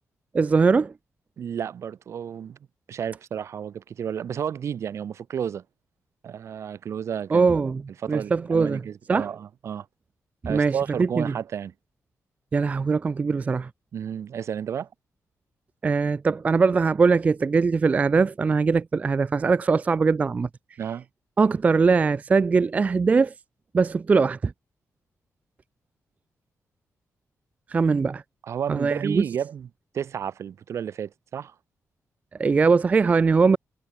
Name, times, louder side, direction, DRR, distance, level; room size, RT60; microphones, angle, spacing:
voice 1, 0.3-0.9 7.3-7.8 8.1-8.8 9.1-9.3 10.4-11.2 12.5-13.7 15.8-20.5 21.4-23.3 23.7-24.5 27.7-28.2 28.7-29.2 32.4-33.6, right 4 dB, 25° right, 0.4 m, -21 dB
voice 2, 1.4-2.6 2.9-5.6 6.2-7.5 8.0-9.9 10.4-11.7 13.9-14.9 20.8-21.1 28.4-29.7 29.9-31.5, right 8 dB, 55° right, 0.8 m, -32 dB
wide cardioid pair, 170°, 6 cm